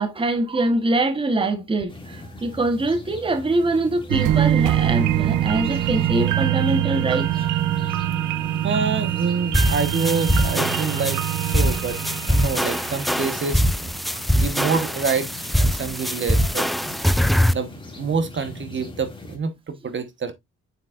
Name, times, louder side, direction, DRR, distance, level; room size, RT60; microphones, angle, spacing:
voice 1, 0.0-7.3 14.1-14.2, right 2 dB, 15° right, 1.0 m, -23 dB
sound 1, 1.9-19.4, left 2 dB, 15° left, 2.2 m, -40 dB
sound 2, 4.1-13.5 13.9-14.0, right 12 dB, 85° right, 0.7 m, -24 dB
voice 2, 8.6-11.2 11.5-12.0 12.3-13.6 14.3-16.9 17.5-20.3, right 5 dB, 40° right, 1.2 m, -27 dB
sound 3, 9.5-17.5, equal, ahead, 0.4 m, -22 dB
7.3 x 6.0 x 2.4 m
cardioid pair, 90°, 30 cm